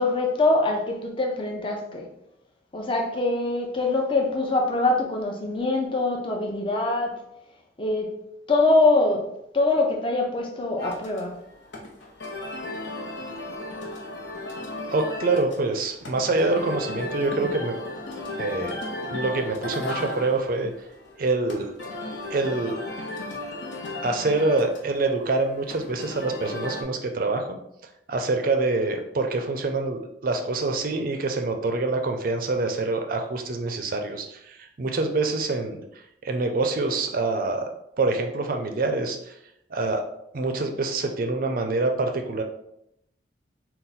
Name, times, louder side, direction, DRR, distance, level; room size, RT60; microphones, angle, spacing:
voice 1, 0.0-2.1 2.7-7.2 7.8-11.4, left 2 dB, 25° left, 0.5 m, -24 dB
sound 1, 10.8-26.8, left 2 dB, 70° left, 0.8 m, -35 dB
voice 2, 14.9-17.8 18.4-18.8 19.1-20.7 21.2-21.7 22.3-22.8 24.0-27.5 28.1-37.6 38.0-39.3 39.7-40.0 40.3-42.4, right 3 dB, 45° right, 0.4 m, -26 dB
4.0 x 2.2 x 4.0 m
head